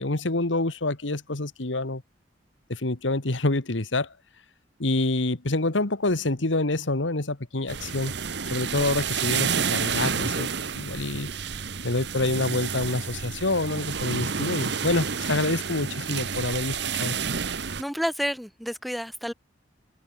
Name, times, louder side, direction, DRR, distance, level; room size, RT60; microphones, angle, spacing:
voice 1, 0.0-2.0 2.7-4.1 4.8-8.1 8.5-10.5 10.7-11.3 11.8-17.2, left 2 dB, 85° left, 1.8 m, -27 dB
sound 1, 7.7-17.8, right 6 dB, 60° right, 1.2 m, -30 dB
voice 2, 17.8-19.3, equal, ahead, 7.7 m, -30 dB
open air
head